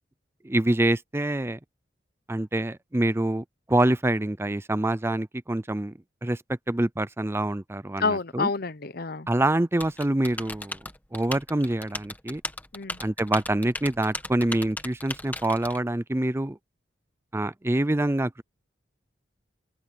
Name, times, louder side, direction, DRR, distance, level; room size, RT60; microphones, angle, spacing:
voice 1, 0.4-1.6 2.3-5.9 6.2-6.4 6.7-8.5 9.3-10.8 11.1-12.4 13.0-16.6 17.3-18.4, right 1 dB, 15° right, 0.5 m, -26 dB
voice 2, 8.0-9.3 12.7-13.0, left 4 dB, 55° left, 0.9 m, -28 dB
Typing, 9.8-15.8, left 2 dB, 10° left, 1.3 m, -37 dB
open air
head